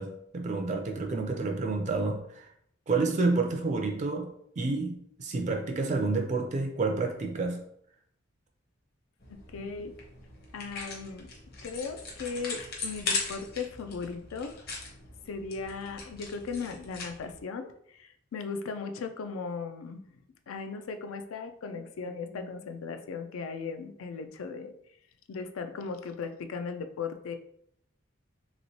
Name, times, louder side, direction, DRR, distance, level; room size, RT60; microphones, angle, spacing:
voice 1, 0.0-2.5 2.9-7.6 9.6-9.7 22.3-22.4, right 3 dB, 35° right, 3 dB, 0.4 m, -29 dB
sound 1, 9.2-17.4, left 4 dB, 50° left, 0.7 m, -39 dB
voice 2, 9.3-10.0 10.5-11.3 11.6-14.6 15.3-24.7 25.3-27.4, left 5 dB, 90° left, 7 dB, 0.4 m, -37 dB
3.0 x 2.9 x 2.8 m, 0.70 s
head